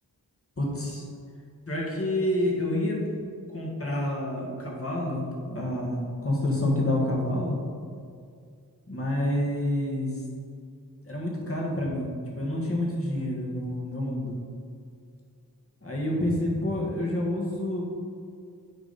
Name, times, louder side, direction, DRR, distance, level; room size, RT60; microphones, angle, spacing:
voice 1, 0.6-1.0 1.7-3.1 3.5-7.6 8.9-10.2 11.0-14.4 15.8-17.8, left 1 dB, 35° left, -2 dB, 1.7 m, -28 dB
8.9 x 5.0 x 4.2 m, 2.2 s
wide cardioid pair, 65°, 38 cm